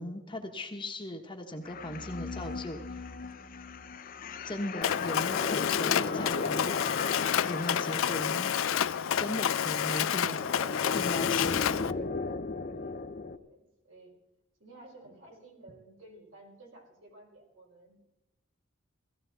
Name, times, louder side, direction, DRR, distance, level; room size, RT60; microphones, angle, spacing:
voice 1, 0.0-3.1 4.4-6.7 7.3-8.5 9.2-10.5 10.9-11.7, left 1 dB, 25° left, 3 dB, 1.4 m, -38 dB
sound 1, 1.6-13.4, left 3 dB, 40° left, 0.7 m, -36 dB
Mechanisms, 4.8-11.9, left 9 dB, 75° left, 0.4 m, -29 dB
voice 2, 12.7-13.0 13.4-14.1 14.6-18.0, right 2 dB, 65° right, -2 dB, 5.6 m, -54 dB
17.5 x 15.5 x 4.2 m, 0.93 s
head